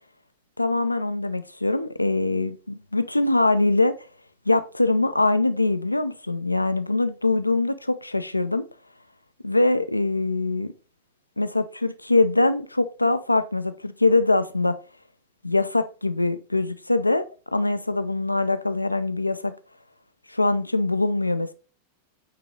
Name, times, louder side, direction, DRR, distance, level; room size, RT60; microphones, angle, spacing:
voice 1, 0.6-4.0 4.5-8.7 9.4-10.7 11.4-14.8 15.4-17.3 17.5-19.5 20.3-21.5, left 2 dB, 85° left, 0.5 m, -23 dB
8.8 x 3.8 x 3.8 m
figure-of-eight pair, 90°, 0 cm